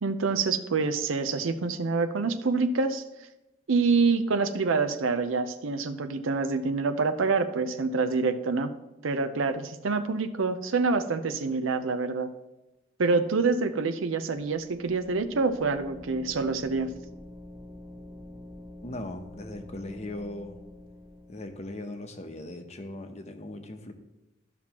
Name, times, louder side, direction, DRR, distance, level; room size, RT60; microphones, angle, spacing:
voice 1, 0.0-3.0 3.7-8.7 9.0-12.3 13.0-16.9, right 4 dB, 75° right, 10 dB, 0.6 m, -26 dB
sound 1, 14.1-21.8, left 1 dB, ahead, 0.6 m, -46 dB
voice 2, 18.8-20.6 21.3-23.9, left 1 dB, 35° left, 6 dB, 0.8 m, -39 dB
13.0 x 5.9 x 3.0 m, 0.98 s
head